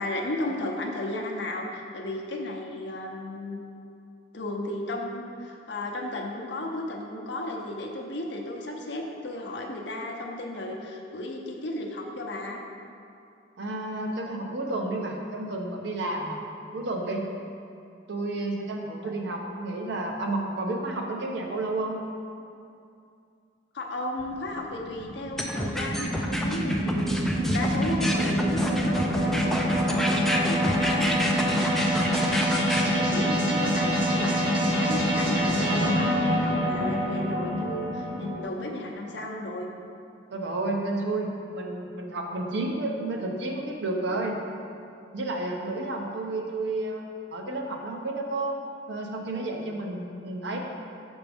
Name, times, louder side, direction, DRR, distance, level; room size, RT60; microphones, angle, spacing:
voice 1, 0.0-3.6 4.3-12.6 23.7-31.1 32.7-39.7, left 1 dB, 60° left, 1 dB, 0.6 m, -34 dB
voice 2, 13.6-16.4 16.7-17.3 18.1-22.0 31.9-32.4 40.3-44.4 45.1-47.0 47.3-48.6 48.9-50.6, right 2 dB, 60° right, 1 dB, 0.7 m, -31 dB
sound 1, 24.2-38.4, equal, 30° right, 0.9 m, -26 dB
sound 2, 25.4-32.8, equal, ahead, 0.3 m, -29 dB
6.0 x 5.2 x 3.4 m, 2.5 s
head